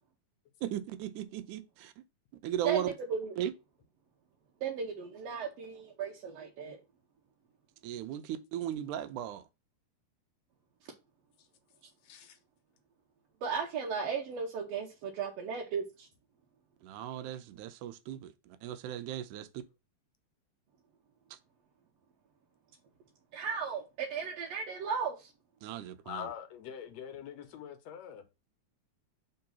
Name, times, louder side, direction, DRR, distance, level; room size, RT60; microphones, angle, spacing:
voice 1, 0.6-2.0 2.4-2.9 3.4-3.5 7.8-9.4 16.8-19.6 21.3-21.4 25.6-26.3, right 11 dB, 85° right, 2.1 m, -37 dB
voice 2, 2.6-3.3 4.6-6.8 13.4-16.1 23.3-25.3, right 6 dB, 65° right, 1.7 m, -35 dB
voice 3, 12.0-12.4 26.1-28.2, left 9 dB, 70° left, 1.8 m, -43 dB
4.6 x 3.8 x 5.6 m
omnidirectional pair, 3.6 m